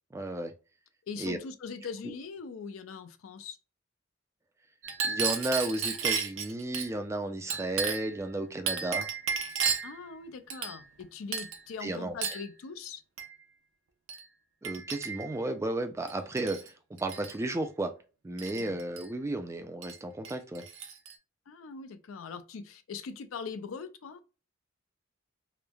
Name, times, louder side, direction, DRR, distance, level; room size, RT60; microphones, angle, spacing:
voice 1, 0.1-0.5 1.2-1.4 5.0-9.1 11.8-12.1 14.6-17.9 18.2-20.6, right 2 dB, 15° right, 0.3 m, -33 dB
voice 2, 1.1-3.6 9.8-13.0 18.6-18.8 21.5-24.2, left 5 dB, 90° left, 0.4 m, -41 dB
Chink clink, 4.8-6.9 7.5-8.2 8.7-10.0 10.5-11.0 11.3-11.6 12.2-12.5 13.2-13.3 14.1-14.2 14.6-15.4 16.1-16.7 17.0-17.4 18.4-19.1 19.8-20.0 20.3-21.1, right 6 dB, 75° right, 0.5 m, -33 dB
3.1 x 2.0 x 2.2 m
head